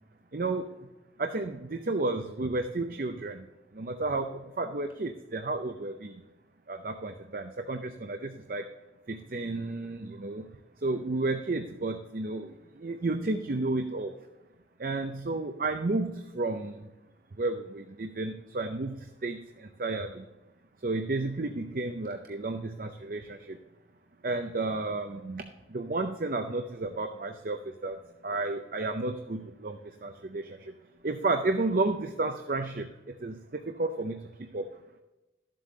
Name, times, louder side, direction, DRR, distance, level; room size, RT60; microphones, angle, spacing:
voice 1, 0.3-0.7 1.2-3.5 3.7-6.2 6.7-8.6 9.1-10.4 10.8-14.1 14.8-16.7 17.4-20.3 20.8-23.6 24.2-28.0 28.2-30.6 31.0-32.9 33.2-34.3 34.5-34.7, right 2 dB, 50° right, 6 dB, 0.6 m, -32 dB
12.5 x 7.6 x 3.8 m, 1.1 s
head